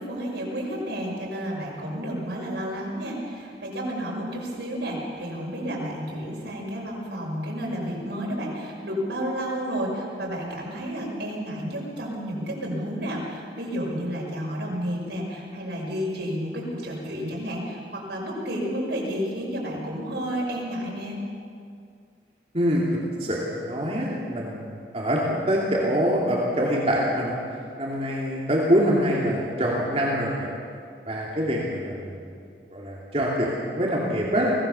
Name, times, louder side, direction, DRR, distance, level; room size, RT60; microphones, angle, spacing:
voice 1, 0.0-21.2, equal, 85° right, -3 dB, 6.3 m, -31 dB
voice 2, 23.2-27.4 27.8-30.5 31.1-32.3 32.7-34.5, equal, 35° right, -4 dB, 2.8 m, -25 dB
24.5 x 17.0 x 7.0 m, 2.3 s
head